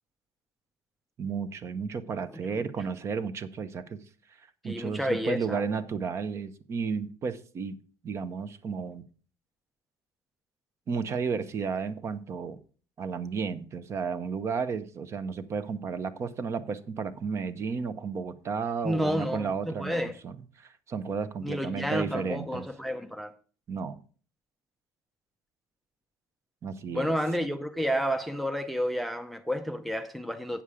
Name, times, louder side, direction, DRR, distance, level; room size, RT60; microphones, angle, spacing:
voice 1, 1.2-4.0 4.6-7.8 8.0-9.0 10.9-12.6 13.0-22.6 23.7-24.0 26.6-27.2, right 5 dB, 35° right, 0.7 m, -33 dB
voice 2, 4.6-5.6 18.8-20.2 21.4-23.3 26.9-30.6, equal, ahead, 0.5 m, -30 dB
8.6 x 7.1 x 4.8 m
cardioid pair, 140°, 8 cm